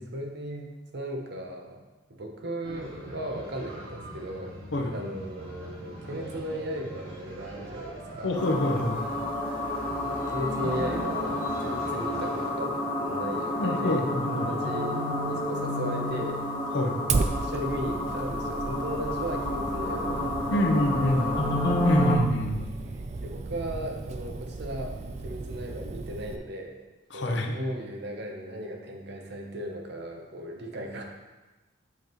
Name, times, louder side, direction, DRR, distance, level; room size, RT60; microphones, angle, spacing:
voice 1, 0.0-1.8 2.1-4.5 4.9-8.3 10.0-16.4 17.1-21.5 23.2-25.0 25.2-26.8 27.1-31.0, right 1 dB, 60° right, 2 dB, 0.9 m, -36 dB
sound 1, 2.6-12.5, right 1 dB, 85° right, 2.3 m, -42 dB
voice 2, 8.2-9.0 13.6-14.5 16.7-17.0 20.5-21.3 21.8-22.6 27.1-27.6, left 1 dB, 65° left, 3 dB, 0.8 m, -26 dB
sound 2, 8.3-22.2, left 1 dB, 25° left, 1.0 m, -30 dB
Fire, 17.1-26.4, right 3 dB, 35° right, 0.3 m, -35 dB
7.8 x 5.1 x 3.0 m, 1.2 s
head